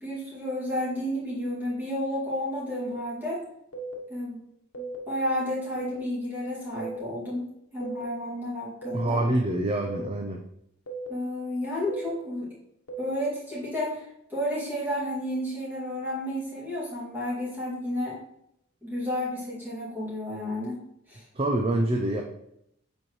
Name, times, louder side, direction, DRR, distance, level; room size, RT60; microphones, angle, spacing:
voice 1, 0.0-3.4 4.1-4.4 4.7-7.5 7.7-9.2 11.1-12.5 13.0-18.2 18.8-20.8 21.1-21.2, left 1 dB, 10° right, -7 dB, 2.4 m, -31 dB
sound 1, 2.7-2.9 3.7-3.9 4.7-5.0 5.8-6.0 6.8-7.0 7.8-8.0 8.8-9.0 9.8-10.0 10.9-11.1 11.9-12.1 12.9-13.1, right 4 dB, 85° left, 1.2 m, -36 dB
voice 2, 8.9-10.4 21.3-22.2, right 1 dB, 25° right, 2 dB, 0.5 m, -26 dB
7.1 x 4.5 x 3.1 m, 0.77 s
head